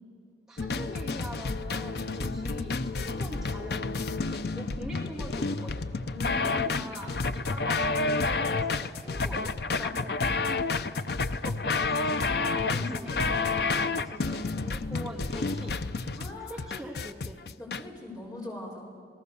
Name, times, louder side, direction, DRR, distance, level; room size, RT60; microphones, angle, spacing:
voice 1, 0.5-5.9 6.4-9.5 11.3-15.8 16.1-17.4, equal, 5° right, -4 dB, 1.9 m, -44 dB
sound 1, 0.6-17.8, left 3 dB, 60° left, 0.7 m, -30 dB
voice 2, 6.1-7.0 9.8-10.1 12.7-12.9 16.1-16.7 17.6-18.8, left 2 dB, 20° left, -2 dB, 5.4 m, -40 dB
29.5 x 19.0 x 6.9 m, 2.3 s
head